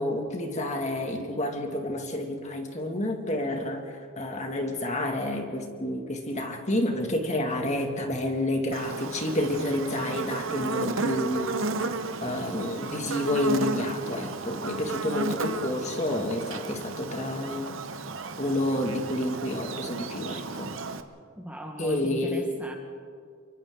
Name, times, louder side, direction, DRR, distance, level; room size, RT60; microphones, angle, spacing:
voice 1, 0.0-11.7 12.2-17.8 18.4-20.8 21.8-22.5, left 1 dB, 35° left, 2 dB, 2.3 m, -29 dB
Buzz, 8.7-21.0, right 3 dB, 65° right, 1.0 m, -33 dB
voice 2, 21.4-22.7, equal, 5° right, 1 dB, 1.3 m, -38 dB
29.0 x 23.5 x 3.9 m, 2.1 s
head